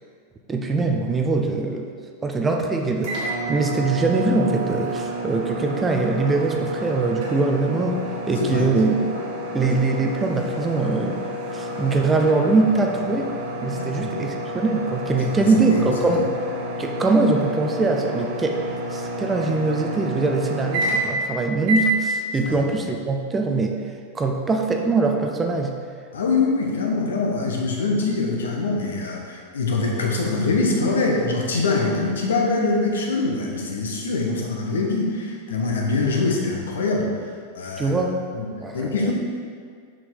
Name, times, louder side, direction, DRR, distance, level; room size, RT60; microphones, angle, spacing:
voice 1, 0.5-1.9 2.2-8.9 9.5-11.2 11.5-13.3 13.6-16.3 16.8-18.6 18.9-25.7 37.8-38.1 38.6-39.1, right 3 dB, 15° right, 3 dB, 0.6 m, -22 dB
sound 1, 3.0-21.3 21.6-22.0, right 1 dB, 50° right, 1.8 m, -29 dB
voice 2, 8.4-8.7 13.8-14.3 15.1-15.9 16.2-16.3 22.4-22.6 26.1-37.1 37.5-38.0 38.3-39.1, left 3 dB, 65° left, -1 dB, 1.1 m, -24 dB
6.7 x 6.1 x 3.8 m, 2.1 s
figure-of-eight pair, 90°, 0 cm